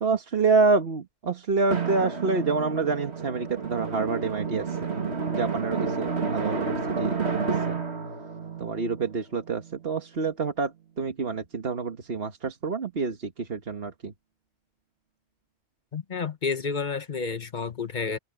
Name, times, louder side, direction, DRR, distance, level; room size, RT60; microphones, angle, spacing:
voice 1, 0.0-4.9 5.3-7.2 7.5-7.8 8.6-14.1, right 4 dB, 65° right, 1.6 m, -27 dB
Drum, 1.7-10.0, right 5 dB, 90° right, 2.3 m, -30 dB
voice 2, 15.9-18.2, left 5 dB, 45° left, 1.2 m, -30 dB
omnidirectional pair, 1.1 m